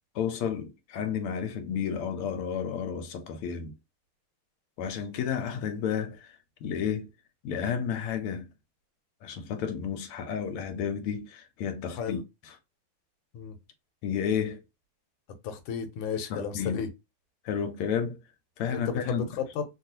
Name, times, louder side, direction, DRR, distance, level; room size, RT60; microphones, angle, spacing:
voice 1, 0.1-3.7 4.8-6.4 6.6-7.1 7.4-8.5 9.2-12.5 14.0-14.6 16.3-16.8 17.4-18.2 18.6-19.3, left 7 dB, 90° left, 1.6 m, -31 dB
voice 2, 15.4-16.9 18.7-19.6, left 6 dB, 70° left, 1.4 m, -33 dB
3.5 x 2.4 x 2.7 m
omnidirectional pair, 2.4 m